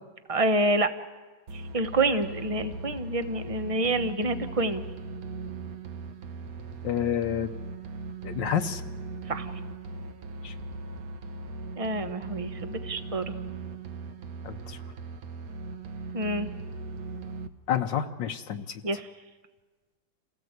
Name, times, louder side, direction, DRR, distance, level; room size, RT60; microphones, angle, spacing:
voice 1, 0.3-0.9 1.5-4.8 9.3-9.5 11.8-13.2 16.1-16.5 18.8-19.1, right 2 dB, 25° right, 9 dB, 0.8 m, -27 dB
sound 1, 1.5-17.5, right 3 dB, 55° right, 1.4 m, -39 dB
voice 2, 6.8-7.5 8.2-8.8 10.4-10.5 14.4-14.8 17.7-18.8, left 9 dB, 70° left, 6 dB, 1.6 m, -29 dB
28.0 x 17.5 x 8.1 m, 1.3 s
omnidirectional pair, 2.1 m